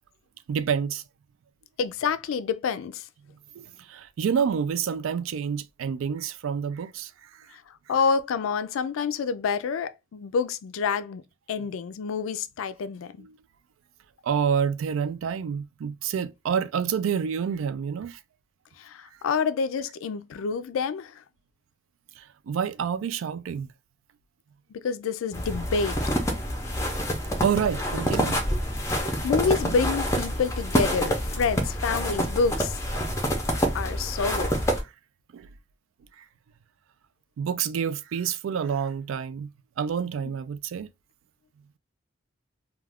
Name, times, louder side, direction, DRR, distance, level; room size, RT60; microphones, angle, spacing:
voice 1, 0.5-1.0 3.6-7.5 13.2-13.4 14.2-18.2 22.2-23.7 27.4-28.4 35.3-35.5 36.2-36.3 37.4-39.5 39.8-40.9, right 7 dB, 85° right, 0.3 m, -28 dB
voice 2, 1.8-3.1 7.5-11.2 11.5-13.3 18.8-21.2 24.7-26.1 29.0-32.8 33.7-34.5 40.2-40.3, left 5 dB, 90° left, 0.3 m, -28 dB
sound 1, 25.3-34.8, equal, 15° left, 0.5 m, -27 dB
2.3 x 2.3 x 3.3 m
head